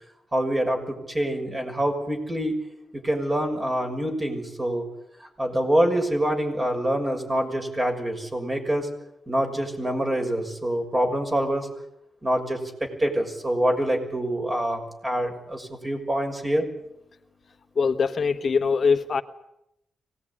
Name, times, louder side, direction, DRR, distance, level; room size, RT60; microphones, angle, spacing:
voice 1, 0.3-2.5 2.9-4.9 5.2-8.9 9.3-11.7 12.2-12.6 13.0-16.7, right 1 dB, 20° right, 3 dB, 6.1 m, -25 dB
voice 2, 17.8-19.2, left 5 dB, 45° left, 7 dB, 1.2 m, -22 dB
25.0 x 19.0 x 9.8 m, 0.83 s
cardioid pair, 115°, 0 cm